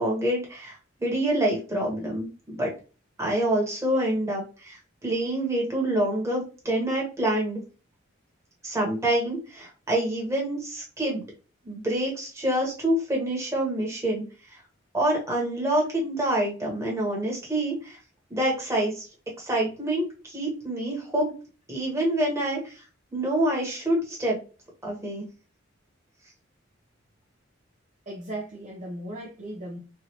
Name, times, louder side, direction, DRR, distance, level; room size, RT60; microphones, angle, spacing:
voice 1, 0.0-2.7 3.2-7.6 8.6-11.2 11.6-14.6 14.9-18.0 18.3-19.0 19.4-21.3 21.7-22.8 23.1-24.4 24.8-25.3, right 1 dB, 15° right, 1.1 m, -27 dB
voice 2, 28.1-29.8, right 1 dB, 35° right, 0.6 m, -37 dB
3.2 x 2.6 x 2.8 m
head